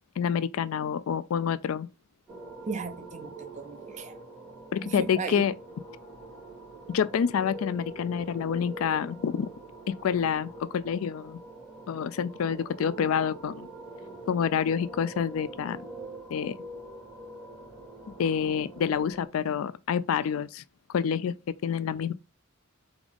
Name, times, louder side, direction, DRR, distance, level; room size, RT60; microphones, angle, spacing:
voice 1, 0.2-1.9 4.7-5.5 6.9-9.5 9.9-11.4 11.9-13.7 14.3-15.8 16.3-16.6 18.2-20.6 20.9-21.3 21.6-22.1, left 7 dB, 75° left, 0.3 m, -28 dB
sound 1, 2.3-19.3, right 2 dB, ahead, 2.2 m, -44 dB
voice 2, 2.7-4.2 4.8-5.5, right 4 dB, 35° right, 0.5 m, -36 dB
3.8 x 3.5 x 3.5 m
head